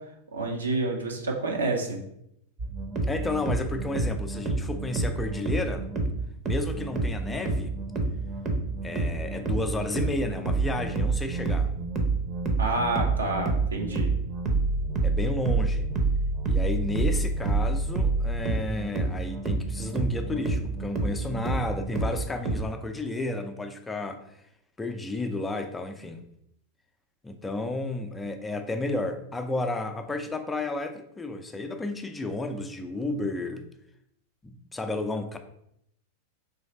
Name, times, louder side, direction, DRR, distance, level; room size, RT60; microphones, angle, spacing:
voice 1, 0.3-2.0 12.6-14.1, right 2 dB, 70° right, 1 dB, 0.7 m, -28 dB
sound 1, 2.6-22.6, right 3 dB, 30° right, 0.8 m, -28 dB
voice 2, 3.1-5.9 6.4-7.7 8.8-11.7 15.0-15.9 16.4-24.4 24.8-26.2 27.2-33.7 34.4-35.4, left 2 dB, 10° left, 7 dB, 0.5 m, -32 dB
3.9 x 3.1 x 4.3 m, 0.75 s
figure-of-eight pair, 90°, 0 cm